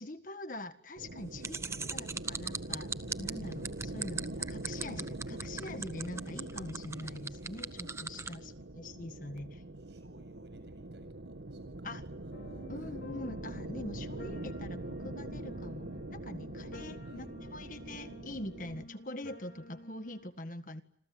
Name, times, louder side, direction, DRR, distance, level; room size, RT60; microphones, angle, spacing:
voice 1, 0.0-2.9 3.2-9.6 11.8-12.0 12.7-20.8, left 1 dB, 45° left, 10 dB, 1.7 m, -44 dB
sound 1, 1.0-18.8, right 1 dB, 85° right, 1.6 m, -43 dB
sound 2, 1.4-8.3, right 4 dB, 15° right, 1.0 m, -37 dB
voice 2, 9.5-11.9 12.2-12.9 17.0-17.3, right 1 dB, 70° right, 10 dB, 7.9 m, -63 dB
sound 3, 12.3-20.3, left 1 dB, 75° left, 5.0 m, -51 dB
28.0 x 27.0 x 7.8 m, 0.71 s
head